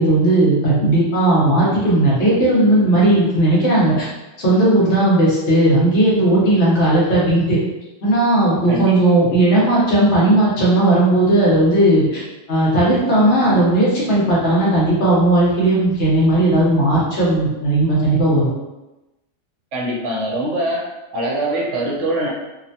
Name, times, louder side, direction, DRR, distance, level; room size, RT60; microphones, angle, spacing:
voice 1, 0.0-4.1 4.4-7.6 8.0-12.2 12.5-18.5, right 1 dB, 65° left, -6 dB, 1.2 m, -16 dB
voice 2, 19.7-20.9 21.1-22.3, right 1 dB, 80° right, -4 dB, 1.1 m, -23 dB
3.0 x 2.1 x 2.7 m, 1.0 s
omnidirectional pair, 1.2 m